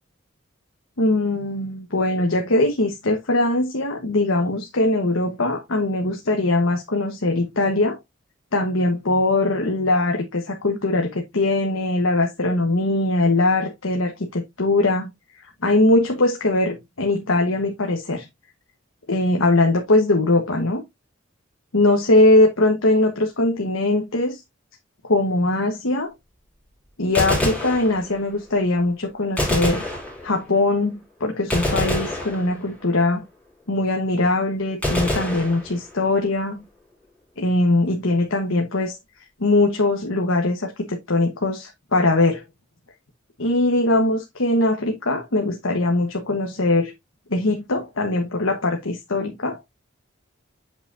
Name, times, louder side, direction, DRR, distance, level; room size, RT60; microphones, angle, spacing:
voice 1, 1.0-8.0 8.5-15.1 15.4-18.3 19.1-20.8 21.7-24.4 25.0-26.1 27.0-29.9 30.2-33.2 33.7-36.6 37.4-39.0 39.4-42.4 43.4-46.9 47.3-49.6, left 2 dB, 80° left, 1.3 m, -21 dB
Gunshot gunfire, 27.0-28.4 29.4-30.6 31.5-32.9 34.8-36.2, left 1 dB, 5° left, 2.9 m, -26 dB
8.0 x 5.7 x 2.7 m
head